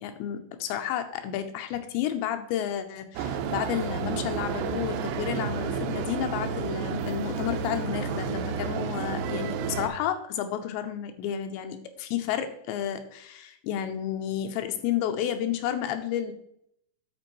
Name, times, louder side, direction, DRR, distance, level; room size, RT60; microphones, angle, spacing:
voice 1, 0.0-16.3, left 10 dB, 85° left, 7 dB, 2.8 m, -31 dB
sound 1, 3.2-9.9, right 6 dB, 80° right, 2.6 m, -31 dB
12.5 x 4.4 x 3.0 m, 0.73 s
omnidirectional pair, 5.2 m